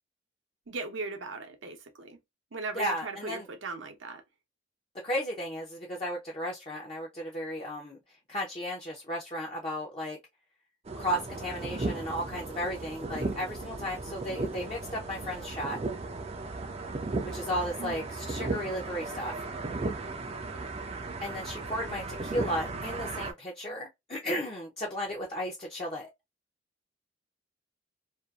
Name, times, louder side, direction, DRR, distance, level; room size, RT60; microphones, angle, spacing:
voice 1, 0.7-2.2 2.5-4.2 17.8-18.0, right 3 dB, 80° right, 0.7 m, -38 dB
voice 2, 2.7-3.5 5.0-8.0 8.3-10.2 11.0-15.8 17.2-19.4 21.2-26.1, equal, 30° left, 0.5 m, -34 dB
sound 1, 10.9-23.3, right 3 dB, 30° right, 0.4 m, -36 dB
2.6 x 2.4 x 2.3 m
head